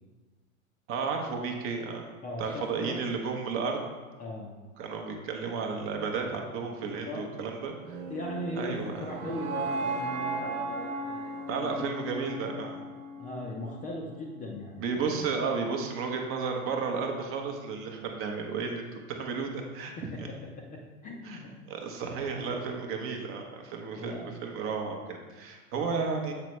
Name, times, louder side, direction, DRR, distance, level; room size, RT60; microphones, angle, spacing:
voice 1, 0.9-2.1 2.4-3.8 4.8-8.0 8.6-9.1 11.5-12.8 14.8-19.9 20.2-20.3 21.2-21.4 21.7-26.3, right 5 dB, 30° right, 2 dB, 0.8 m, -33 dB
voice 2, 2.2-3.0 4.2-4.5 6.8-7.3 8.1-11.9 13.2-15.3 20.0-21.5 24.0-24.3 25.7-26.0, left 2 dB, 20° left, -1 dB, 0.5 m, -39 dB
sound 1, 7.8-13.9, right 3 dB, 65° right, 1.1 m, -36 dB
7.5 x 4.1 x 3.1 m, 1.3 s
hypercardioid pair, 110°, 43 cm